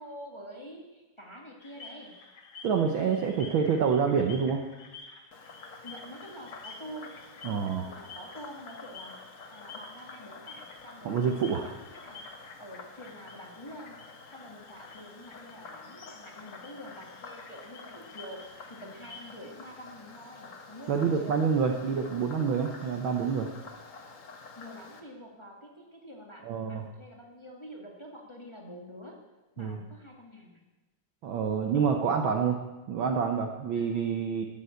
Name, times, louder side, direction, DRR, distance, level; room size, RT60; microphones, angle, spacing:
voice 1, 0.0-2.1 5.8-7.2 7.6-9.2 9.5-12.3 12.6-14.0 14.3-18.4 18.7-21.4 24.5-29.2 29.5-30.6 33.7-33.9, equal, 10° left, 0 dB, 1.5 m, -47 dB
sound 1, 1.6-19.2, left 3 dB, 50° left, 1.5 m, -50 dB
voice 2, 2.6-4.6 7.4-7.9 11.0-11.6 20.9-23.5 26.5-26.8 29.6-29.8 31.2-32.6 32.9-34.5, right 6 dB, 80° right, 4 dB, 1.1 m, -27 dB
Frog, 5.3-25.0, left 4 dB, 70° left, 0.7 m, -49 dB
12.0 x 9.8 x 7.8 m, 1.1 s
omnidirectional pair, 3.5 m